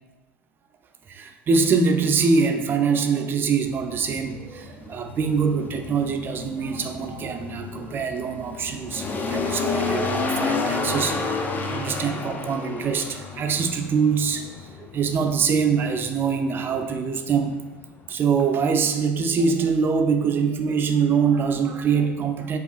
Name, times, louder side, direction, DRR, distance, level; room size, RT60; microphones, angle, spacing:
voice 1, 1.1-11.2 11.7-14.7 14.9-17.6 18.1-22.6, right 5 dB, 30° right, 5 dB, 0.4 m, -24 dB
sound 1, 3.7-18.1, left 3 dB, 25° left, 0.4 m, -31 dB
4.8 x 2.4 x 2.4 m, 1.1 s
hypercardioid pair, 80°, 7 cm